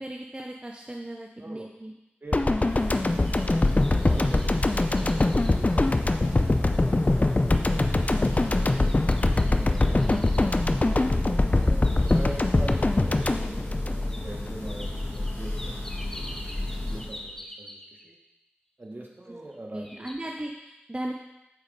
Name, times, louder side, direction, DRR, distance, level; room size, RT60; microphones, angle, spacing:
voice 1, 0.0-1.9 9.4-9.7 9.9-11.2 19.3-19.4 19.7-21.1, right 1 dB, 25° right, 0 dB, 0.6 m, -37 dB
voice 2, 1.4-1.7 2.2-3.6 4.1-8.7 9.5-10.0 11.6-16.0 16.8-18.2 18.8-20.1, right 1 dB, 55° right, 0 dB, 1.1 m, -42 dB
sound 1, 2.3-14.5 14.8-15.0, left 2 dB, 40° left, 0.4 m, -23 dB
Church bell, 2.4-17.3, left 1 dB, 70° left, 1.7 m, -32 dB
sound 2, 3.2-6.5 7.1-7.2 7.6-8.0 8.9-10.5 11.5-12.5 13.2-13.3 14.1-14.2 14.7-18.1 19.1-19.6 19.8-20.1, left 1 dB, 10° left, 0.8 m, -45 dB
8.2 x 3.1 x 5.2 m, 0.93 s
wide cardioid pair, 55°, 4 cm